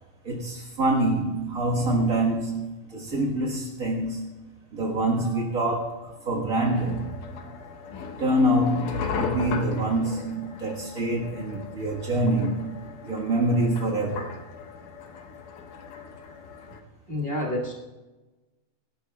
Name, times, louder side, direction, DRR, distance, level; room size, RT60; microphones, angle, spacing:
voice 1, 0.2-4.2 4.7-7.1 8.2-12.8 13.0-14.4, right 1 dB, 60° right, 0.8 m, -25 dB
sound 1, 6.7-16.8, left 6 dB, 70° left, 2.4 m, -37 dB
voice 2, 17.1-17.7, left 1 dB, 30° right, 1.0 m, -28 dB
25.5 x 12.5 x 2.4 m
omnidirectional pair, 4.1 m